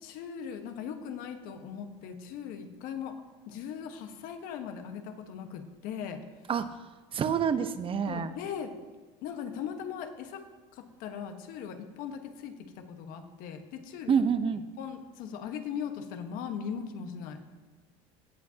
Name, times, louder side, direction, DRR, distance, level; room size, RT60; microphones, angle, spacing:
voice 1, 0.0-3.2 3.5-6.2 8.1-8.7 9.2-10.4 10.7-14.2 14.8-17.4, left 7 dB, 65° left, 6 dB, 1.3 m, -39 dB
voice 2, 7.1-8.3 14.1-14.6, right 7 dB, 35° right, 11 dB, 0.9 m, -27 dB
17.0 x 7.4 x 2.9 m, 1.4 s
supercardioid pair, 90°, 15 cm